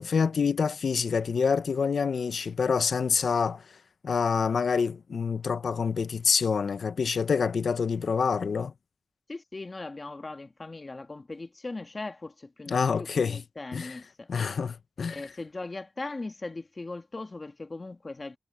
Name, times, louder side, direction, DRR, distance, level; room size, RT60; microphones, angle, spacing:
voice 1, 0.0-3.6 4.0-8.7 12.7-13.4 13.7-14.0 14.3-15.3, left 5 dB, 75° left, 0.7 m, -27 dB
voice 2, 9.3-14.3 15.1-18.4, left 3 dB, 35° left, 1.6 m, -39 dB
cardioid pair, 70°, 0 cm